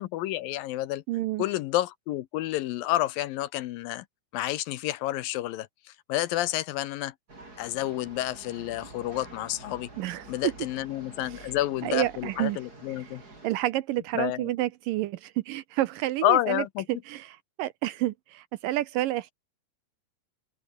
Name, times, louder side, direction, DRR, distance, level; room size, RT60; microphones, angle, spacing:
voice 1, 0.0-1.0 1.4-4.1 4.3-7.1 7.6-9.9 10.3-13.2 14.1-14.5 16.2-16.9, left 15 dB, 75° left, 2.4 m, -29 dB
voice 2, 1.1-1.4 10.0-10.2 11.8-12.6 13.4-16.6 17.1-17.3 17.6-19.3, right 15 dB, 75° right, 2.2 m, -29 dB
sound 1, 7.3-13.5, right 2 dB, 25° right, 6.4 m, -48 dB
open air
omnidirectional pair, 4.4 m